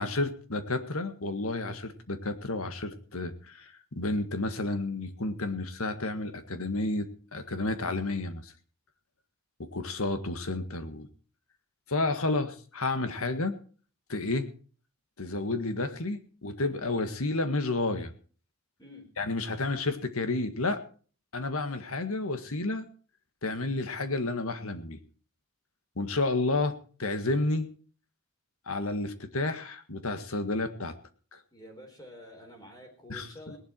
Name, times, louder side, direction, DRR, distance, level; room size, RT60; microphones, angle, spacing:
voice 1, 0.0-8.5 9.6-11.1 11.9-13.6 14.1-14.5 15.2-18.1 19.2-20.8 21.3-22.9 23.4-25.0 26.0-27.7 28.7-30.9 31.3-31.4 33.1-33.3, left 2 dB, 75° left, 9 dB, 1.8 m, -31 dB
voice 2, 31.5-33.6, left 1 dB, 15° left, 3 dB, 4.2 m, -48 dB
18.5 x 11.5 x 4.6 m, 0.41 s
head